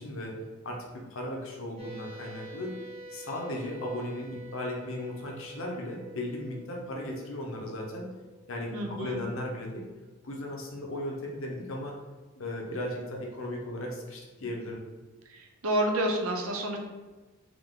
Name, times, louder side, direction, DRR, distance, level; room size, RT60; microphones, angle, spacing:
voice 1, 0.0-2.7 3.1-8.1 8.5-9.9 10.2-12.0 12.4-14.8, left 1 dB, 70° left, -1 dB, 0.9 m, -36 dB
sound 1, 1.8-9.8, right 1 dB, 30° right, 0.7 m, -48 dB
voice 2, 8.7-9.2 15.3-16.8, right 1 dB, 90° right, 2 dB, 0.7 m, -29 dB
3.8 x 3.0 x 3.6 m, 1.3 s
head